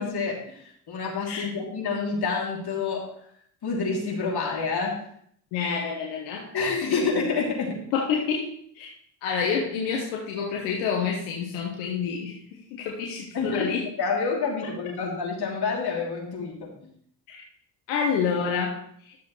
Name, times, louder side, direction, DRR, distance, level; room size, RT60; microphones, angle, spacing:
voice 1, 0.0-3.1 3.6-5.0 6.5-7.8 13.3-13.7 14.0-16.7, left 4 dB, 55° left, -1 dB, 2.9 m, -28 dB
voice 2, 5.5-6.5 6.9-7.0 7.9-8.9 9.2-13.8 17.3-17.4 17.9-19.1, left 6 dB, 90° left, 0 dB, 1.1 m, -28 dB
12.0 x 7.2 x 3.1 m, 0.65 s
supercardioid pair, 50°, 45 cm